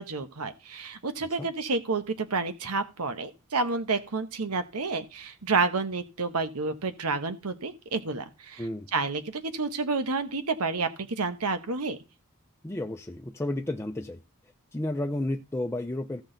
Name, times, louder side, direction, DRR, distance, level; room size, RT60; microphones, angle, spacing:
voice 1, 0.0-8.6 8.9-10.9 11.2-12.0, right 4 dB, 90° right, 1.1 m, -30 dB
voice 2, 8.6-8.9 12.6-14.2 14.7-16.2, left 1 dB, 10° left, 0.5 m, -32 dB
15.5 x 6.1 x 3.9 m
head